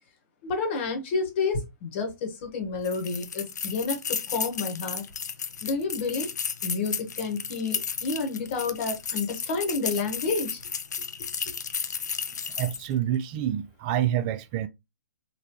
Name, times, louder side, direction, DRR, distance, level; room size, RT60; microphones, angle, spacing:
voice 1, 0.4-5.0 5.6-6.3 6.6-10.6, left 4 dB, 40° left, 1.1 m, -30 dB
sound 1, 2.8-12.9, left 6 dB, 70° left, 0.5 m, -33 dB
voice 2, 12.6-14.7, right 11 dB, 25° right, 0.3 m, -27 dB
3.7 x 2.2 x 3.0 m
hypercardioid pair, 135°, 10 cm